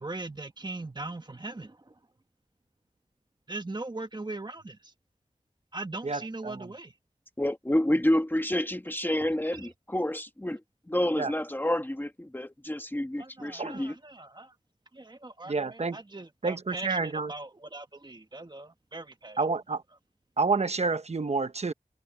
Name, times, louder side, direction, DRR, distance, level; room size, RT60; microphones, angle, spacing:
voice 1, 0.0-1.9 3.5-4.9 5.7-6.9 9.5-9.7 13.2-14.5 14.9-19.4, right 2 dB, 35° right, 1.7 m, -40 dB
voice 2, 6.0-6.7 11.2-11.3 13.6-13.8 15.5-16.0 16.4-17.3 19.4-19.8 20.4-21.7, right 4 dB, 55° right, 1.1 m, -29 dB
voice 3, 7.4-10.6 10.9-14.0, left 1 dB, 15° left, 1.3 m, -28 dB
open air
wide cardioid pair, 70°, 13 cm